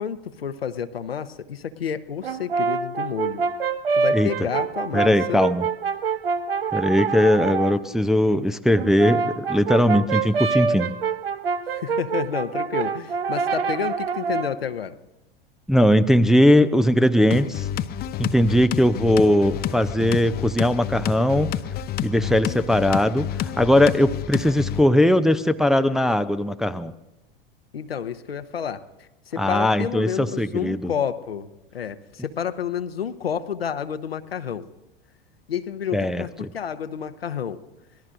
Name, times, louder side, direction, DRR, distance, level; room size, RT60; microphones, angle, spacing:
voice 1, 0.0-3.4 3.9-5.4 11.7-15.0 27.7-34.7 35.5-37.6, left 8 dB, 85° left, 10 dB, 0.9 m, -30 dB
Brass instrument, 2.2-7.8 8.7-14.6, right 5 dB, 80° right, 0.7 m, -26 dB
voice 2, 4.9-5.6 6.7-10.9 15.7-17.7 18.2-21.6 22.0-26.9 29.4-30.9 35.9-36.5, left 1 dB, ahead, 9 dB, 0.4 m, -19 dB
sound 1, 17.3-24.8, left 10 dB, 30° left, 0.8 m, -29 dB
25.0 x 18.5 x 2.6 m, 0.99 s
figure-of-eight pair, 85°, 30 cm